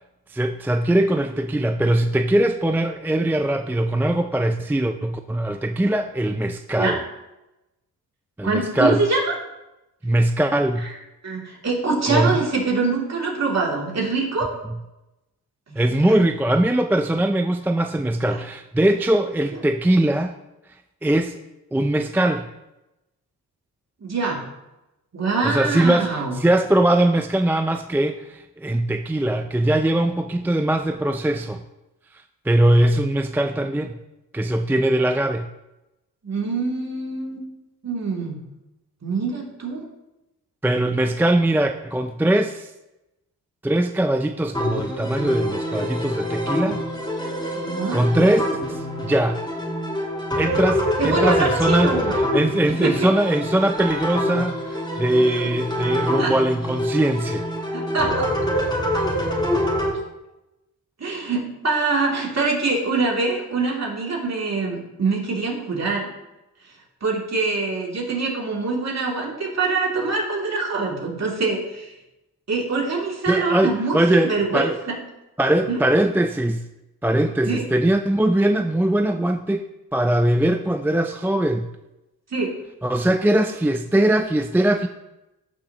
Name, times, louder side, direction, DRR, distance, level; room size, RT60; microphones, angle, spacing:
voice 1, 0.3-7.0 8.4-9.0 10.0-10.9 12.1-12.3 15.8-20.3 21.0-21.4 21.7-22.5 25.4-31.6 32.5-34.0 34.3-35.5 40.6-42.7 43.6-46.8 47.9-48.4 48.7-49.4 50.4-57.5 73.3-74.7 75.4-76.7 77.0-79.6 79.9-81.7 82.8-84.9, right 1 dB, 5° right, 7 dB, 0.4 m, -21 dB
voice 2, 8.4-9.3 11.2-14.5 15.7-15.8 16.1-16.2 18.3-18.4 24.0-24.4 25.1-26.4 36.2-37.4 37.8-38.4 39.0-39.8 47.5-48.0 51.0-52.3 52.8-53.1 56.2-56.3 57.7-58.3 61.0-66.1 67.0-71.9 72.5-75.0 75.7-75.8 77.4-77.6 82.3-82.5, right 3 dB, 45° right, -3 dB, 3.0 m, -24 dB
sound 1, 44.5-59.9, equal, 10° left, 3.8 m, -25 dB
14.5 x 6.1 x 3.0 m, 0.95 s
cardioid pair, 75°, 38 cm